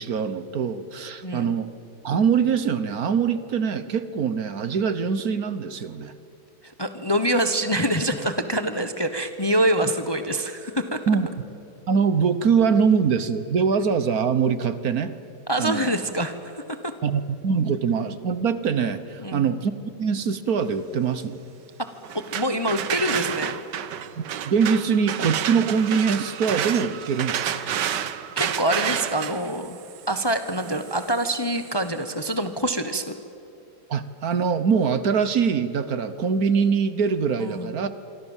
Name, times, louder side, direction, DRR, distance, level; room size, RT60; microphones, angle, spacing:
voice 1, 0.0-1.7 2.0-6.1 11.1-11.3 11.9-15.1 15.6-15.9 17.0-19.7 20.0-21.4 24.2-27.8 33.9-37.9, right 6 dB, 60° right, 13 dB, 1.5 m, -23 dB
voice 2, 1.2-1.5 6.6-11.0 15.5-16.9 19.2-19.5 22.3-23.5 27.5-28.0 28.4-29.8 30.1-33.2 37.4-37.7, right 1 dB, 15° left, 9 dB, 0.9 m, -25 dB
sound 1, 22.0-31.9, right 9 dB, 80° right, 1.6 m, -30 dB
27.0 x 25.0 x 7.3 m, 2.8 s
omnidirectional pair, 1.8 m